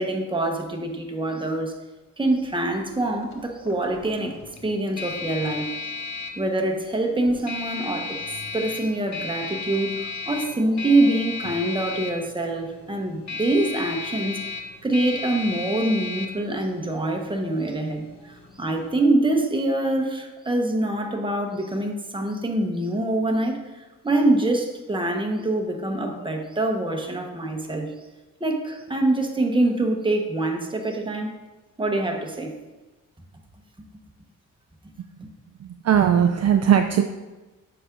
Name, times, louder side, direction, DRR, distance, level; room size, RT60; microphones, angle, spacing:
voice 1, 0.0-1.7 2.2-4.4 4.6-5.9 6.4-8.2 8.5-14.4 14.8-27.9 28.4-31.3 31.8-32.5, right 2 dB, 15° right, 2 dB, 1.1 m, -25 dB
sound 1, 2.2-19.1, left 4 dB, 55° left, 0.9 m, -36 dB
voice 2, 35.6-37.0, right 9 dB, 50° right, 6 dB, 0.4 m, -19 dB
7.7 x 5.9 x 2.6 m, 1.2 s
cardioid pair, 65°, 34 cm